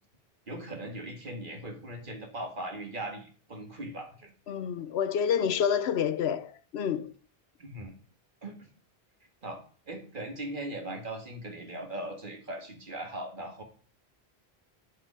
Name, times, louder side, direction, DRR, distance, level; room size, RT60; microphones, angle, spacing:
voice 1, 0.5-4.3 7.6-7.9 8.4-8.7 9.4-13.6, right 1 dB, 55° right, 1.9 m, -39 dB
voice 2, 4.5-7.1, left 8 dB, 80° left, 1.0 m, -28 dB
7.7 x 4.9 x 6.0 m
omnidirectional pair, 1.0 m